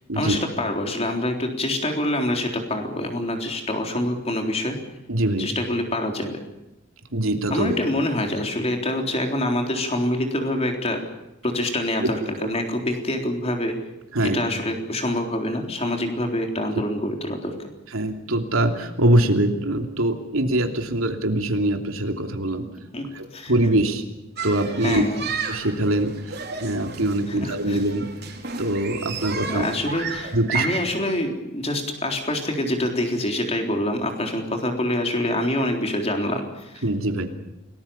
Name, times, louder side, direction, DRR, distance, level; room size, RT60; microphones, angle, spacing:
voice 1, 0.1-4.8 5.4-6.4 7.5-11.0 11.4-13.7 14.2-17.5 22.9-23.5 24.8-25.3 27.3-27.8 29.5-36.8, left 1 dB, 30° left, 3 dB, 3.8 m, -26 dB
voice 2, 5.1-5.5 7.1-7.8 12.4-12.5 14.1-14.4 17.9-22.6 23.1-24.0 24.4-25.0 25.4-28.1 28.6-29.6 30.3-30.6 36.8-37.3, right 1 dB, 80° right, 4 dB, 3.0 m, -23 dB
sound 1, 24.4-30.9, right 5 dB, 50° right, 4.3 m, -32 dB
29.0 x 19.5 x 7.2 m, 0.95 s
head